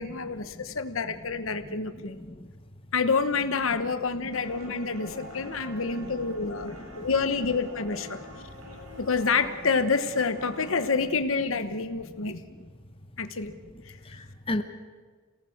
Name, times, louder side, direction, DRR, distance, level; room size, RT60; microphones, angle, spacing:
voice 1, 0.0-2.2 2.9-8.2 9.0-12.4 13.2-13.5, left 4 dB, 65° left, 10 dB, 1.1 m, -28 dB
sound 1, 4.3-10.9, left 1 dB, 85° right, 7.8 m, -45 dB
voice 2, 5.7-6.1 6.7-6.8 12.2-12.3 14.1-14.6, left 1 dB, 25° left, 7 dB, 1.0 m, -35 dB
28.5 x 18.0 x 6.5 m, 1.5 s
head